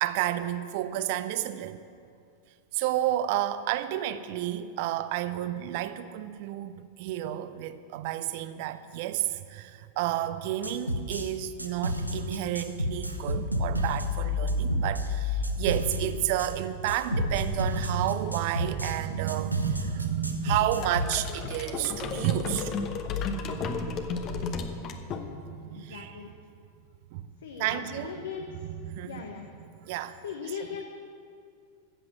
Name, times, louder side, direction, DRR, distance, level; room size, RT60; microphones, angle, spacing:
voice 1, 0.0-1.8 2.7-26.2 27.1-27.2 27.6-28.2 28.5-29.4 29.8-30.2, right 12 dB, 50° right, 13 dB, 0.7 m, -31 dB
sound 1, 10.6-11.3 11.6-16.5 16.9-19.0 19.3-21.2, left 1 dB, 85° right, 0.9 m, -30 dB
sound 2, 20.8-25.7, left 5 dB, 35° left, 1.0 m, -34 dB
voice 2, 25.7-26.3 27.4-28.5 29.1-29.5 30.2-30.8, left 7 dB, 65° left, 4 dB, 1.0 m, -38 dB
14.5 x 7.8 x 7.4 m, 2.3 s
figure-of-eight pair, 90°, 0 cm